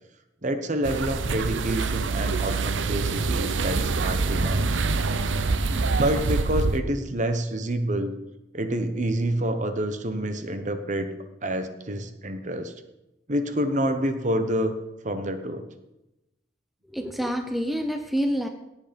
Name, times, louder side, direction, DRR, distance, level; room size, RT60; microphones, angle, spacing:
voice 1, 0.4-4.8 5.7-8.2 8.5-12.7 13.3-14.8 15.0-15.6, right 1 dB, 40° right, 8 dB, 1.1 m, -28 dB
sound 1, 0.8-6.8, right 3 dB, 80° right, 0.7 m, -25 dB
voice 2, 16.9-18.5, equal, ahead, 5 dB, 0.7 m, -27 dB
17.0 x 8.3 x 5.2 m, 0.96 s
head